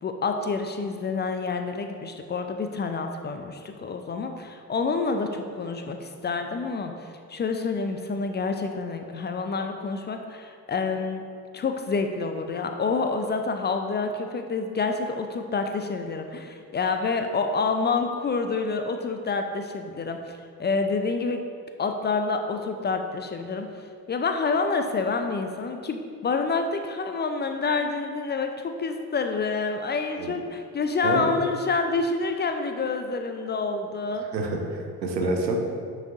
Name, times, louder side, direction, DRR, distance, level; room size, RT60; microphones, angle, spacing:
voice 1, 0.0-6.9 7.3-11.2 11.5-21.4 21.8-23.7 24.1-34.3, left 4 dB, 20° left, 6 dB, 0.5 m, -28 dB
voice 2, 34.3-35.6, right 2 dB, 85° right, 2 dB, 0.8 m, -27 dB
9.6 x 6.0 x 2.5 m, 2.2 s
figure-of-eight pair, 45°, 49 cm